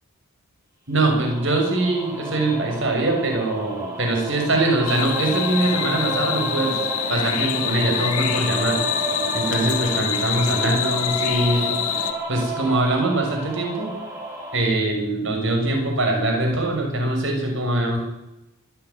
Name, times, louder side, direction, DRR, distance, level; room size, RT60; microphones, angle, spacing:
voice 1, 0.9-6.8 7.1-8.8 9.3-11.8 12.3-13.9 14.5-18.0, right 2 dB, 60° right, 1 dB, 6.4 m, -22 dB
sound 1, 1.0-14.5, right 1 dB, 15° right, 5.4 m, -31 dB
sound 2, 4.9-12.1, left 9 dB, 85° left, 2.0 m, -26 dB
25.5 x 11.0 x 9.7 m, 0.96 s
head